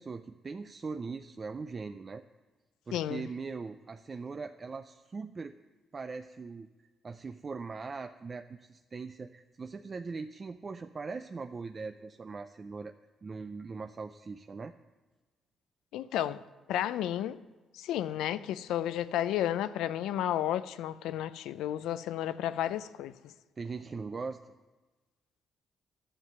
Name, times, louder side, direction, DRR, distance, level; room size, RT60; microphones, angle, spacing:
voice 1, 0.0-2.2 2.9-5.6 5.9-6.7 7.0-12.9 13.2-14.7 23.6-24.4, right 4 dB, 35° right, 0.5 m, -40 dB
voice 2, 2.9-3.2 15.9-16.4 16.7-17.4 17.7-23.1, left 11 dB, 90° left, 0.5 m, -32 dB
11.0 x 7.5 x 9.2 m
cardioid pair, 90°, 0 cm